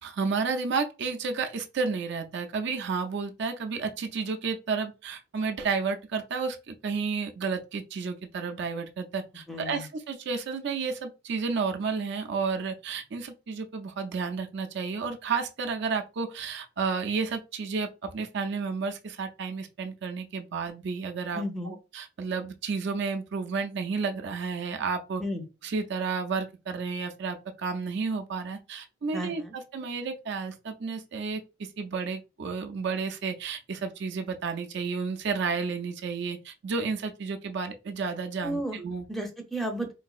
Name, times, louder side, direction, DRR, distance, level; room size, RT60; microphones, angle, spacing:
voice 1, 0.0-25.2 25.6-39.0, right 5 dB, 55° right, 0.5 m, -31 dB
voice 2, 9.5-9.9 21.3-21.8 25.2-25.4 29.1-29.5 38.4-38.8 39.1-39.9, equal, ahead, 0.5 m, -33 dB
3.9 x 2.6 x 2.4 m
head